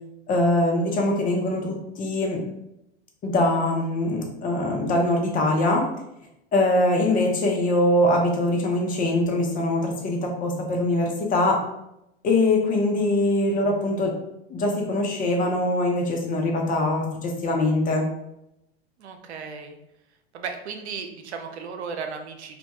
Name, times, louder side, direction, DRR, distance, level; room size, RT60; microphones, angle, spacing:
voice 1, 0.3-2.4 3.2-5.9 6.5-11.6 12.2-14.2 14.5-18.1, left 1 dB, 25° left, 1 dB, 0.6 m, -23 dB
voice 2, 19.0-19.8 20.3-22.6, right 5 dB, 85° right, 5 dB, 0.5 m, -35 dB
2.2 x 2.1 x 2.9 m, 0.83 s
hypercardioid pair, 100°, 33 cm